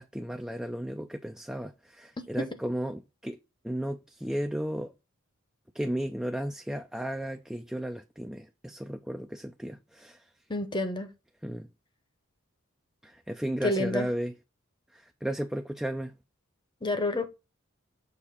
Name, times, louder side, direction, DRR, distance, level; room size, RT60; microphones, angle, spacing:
voice 1, 0.0-3.4 3.6-4.9 5.7-10.2 11.4-11.7 13.0-14.3 14.9-16.1, right 1 dB, 5° right, 0.4 m, -34 dB
voice 2, 10.5-11.1 13.6-14.1 16.8-17.3, left 2 dB, 20° left, 0.9 m, -28 dB
6.8 x 2.9 x 5.6 m
head